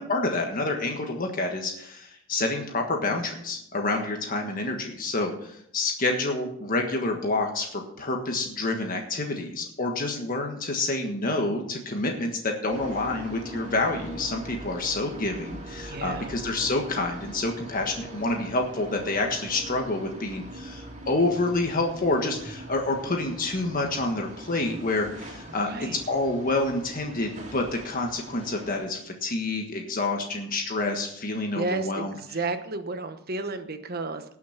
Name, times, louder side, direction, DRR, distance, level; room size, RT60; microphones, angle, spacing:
voice 1, 0.0-32.2, left 2 dB, 45° left, 3 dB, 1.5 m, -28 dB
sound 1, 12.7-28.9, right 1 dB, 35° right, 2.8 m, -42 dB
voice 2, 15.8-16.4 25.6-26.0 31.5-34.4, right 3 dB, 50° right, 9 dB, 1.1 m, -32 dB
18.5 x 6.2 x 5.8 m, 0.73 s
head